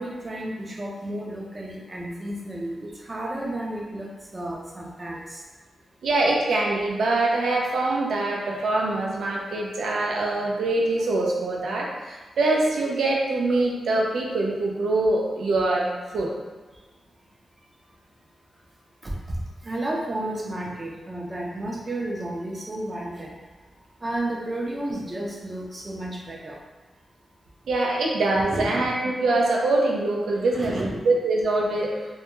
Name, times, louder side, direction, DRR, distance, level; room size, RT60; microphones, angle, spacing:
voice 1, 0.0-5.4 19.0-23.4 24.0-26.6 28.3-28.9 30.5-31.0, right 1 dB, 30° right, -2 dB, 0.5 m, -32 dB
voice 2, 6.0-16.3 27.7-31.9, right 2 dB, 85° right, -2 dB, 0.5 m, -24 dB
2.2 x 2.2 x 3.0 m, 1.3 s
cardioid pair, 70°, 0 cm